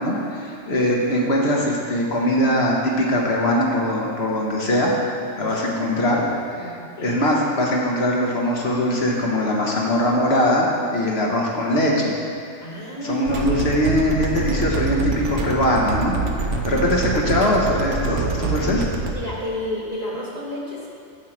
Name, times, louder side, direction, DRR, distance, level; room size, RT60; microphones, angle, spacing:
voice 1, 0.0-5.0 5.4-6.2 6.6-6.7 7.0-12.1 13.0-18.9, left 1 dB, 55° left, -2 dB, 1.5 m, -21 dB
voice 2, 6.5-7.2 12.6-13.3 16.7-16.9 19.1-20.9, left 1 dB, 30° left, -5 dB, 1.6 m, -31 dB
sound 1, 13.3-19.1, right 4 dB, 70° right, 1.1 m, -25 dB
9.0 x 4.7 x 7.3 m, 2.5 s
omnidirectional pair, 1.4 m